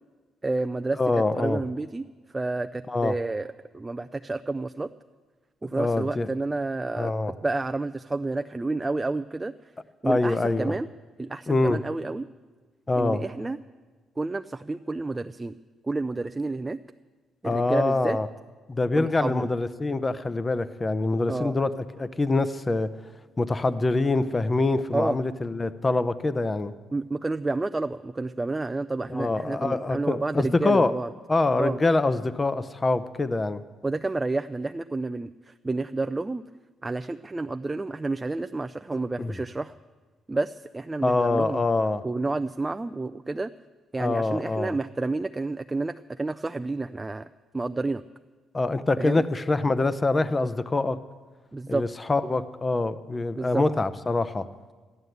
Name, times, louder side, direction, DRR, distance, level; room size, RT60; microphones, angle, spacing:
voice 1, 0.4-1.0 1.3-2.1 2.3-3.5 3.7-4.9 5.6-7.1 7.4-9.5 10.0-10.9 11.2-12.3 13.0-13.6 14.2-15.6 15.9-16.8 17.4-18.2 19.0-19.5 21.3-21.6 24.9-25.2 26.9-31.1 31.6-31.8 33.8-36.4 36.8-39.7 40.3-41.6 42.0-43.5 43.9-47.3 47.5-48.0 49.0-49.3 51.5-51.8 53.4-53.6, right 3 dB, 20° right, 9 dB, 0.3 m, -30 dB
voice 2, 1.0-1.6 2.9-3.2 5.7-6.3 7.0-7.3 10.0-10.7 11.5-11.8 12.9-13.2 17.4-18.3 18.7-21.7 22.0-22.9 23.4-26.7 29.1-30.9 31.3-33.6 39.2-39.3 41.0-42.0 44.0-44.8 48.5-51.0 51.7-54.5, left 2 dB, 25° left, 14 dB, 0.7 m, -25 dB
13.5 x 11.0 x 8.0 m, 1.4 s
cardioid pair, 90°, 0 cm